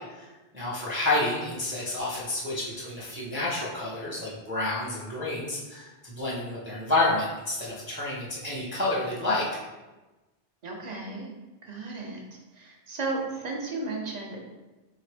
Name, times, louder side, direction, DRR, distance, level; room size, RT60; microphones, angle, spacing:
voice 1, 0.5-9.5, left 2 dB, 15° right, -6 dB, 0.7 m, -29 dB
voice 2, 10.6-11.3 11.6-12.2 12.5-14.4, right 3 dB, 45° right, -1 dB, 0.8 m, -34 dB
3.9 x 3.6 x 3.4 m, 1.1 s
omnidirectional pair, 1.1 m